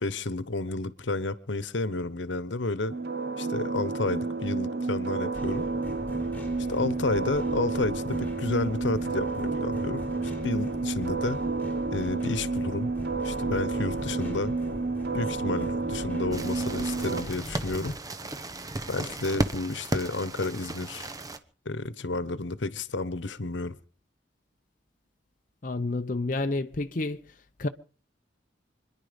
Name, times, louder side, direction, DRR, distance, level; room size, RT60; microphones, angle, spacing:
voice 1, 0.0-2.9 3.4-5.7 6.7-11.4 11.9-12.9 13.2-14.6 15.1-18.0 18.9-21.1 21.6-23.8, left 3 dB, 80° left, 1.1 m, -31 dB
sound 1, 2.9-17.2, right 3 dB, 60° right, 1.2 m, -30 dB
sound 2, 5.3-18.0, left 1 dB, 10° left, 3.6 m, -41 dB
sound 3, 16.3-21.4, right 1 dB, 20° right, 1.0 m, -34 dB
voice 2, 25.6-27.2 27.6-27.7, left 2 dB, 45° left, 0.7 m, -29 dB
25.5 x 10.5 x 5.2 m
head